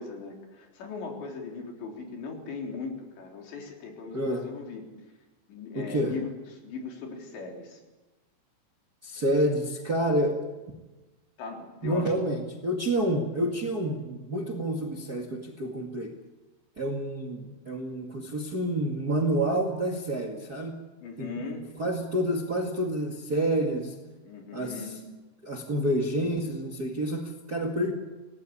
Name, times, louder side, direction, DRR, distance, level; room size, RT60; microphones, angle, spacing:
voice 1, 0.0-4.8 5.5-6.4 6.6-7.8 11.4-12.1 21.0-21.7 24.2-25.0, left 4 dB, 80° left, 1 dB, 6.0 m, -38 dB
voice 2, 5.7-6.1 9.0-10.3 11.8-16.1 16.8-20.8 21.2-21.3 21.8-23.9 24.5-24.8 25.4-27.9, right 1 dB, 35° right, 1 dB, 1.6 m, -28 dB
25.5 x 18.5 x 8.7 m, 1.1 s
omnidirectional pair, 5.0 m